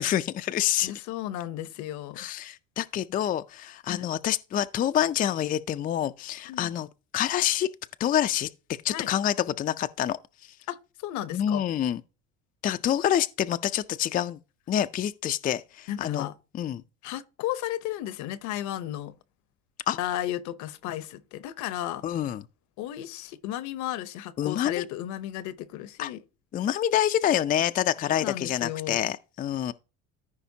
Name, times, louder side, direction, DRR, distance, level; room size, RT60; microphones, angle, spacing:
voice 1, 0.0-0.9 2.2-6.9 7.1-7.7 8.0-8.5 8.8-10.2 11.3-12.0 12.6-14.4 14.7-16.3 16.5-16.8 19.9-20.0 22.0-22.4 24.4-24.8 26.0-26.1 26.5-29.7, left 11 dB, 30° left, 0.4 m, -27 dB
voice 2, 0.8-2.2 3.9-4.0 6.4-6.7 8.9-9.1 10.7-11.6 15.9-16.3 17.0-19.1 20.0-22.0 22.8-26.2 28.1-29.1, left 12 dB, 65° left, 0.8 m, -34 dB
14.0 x 5.0 x 2.7 m
supercardioid pair, 105°, 31 cm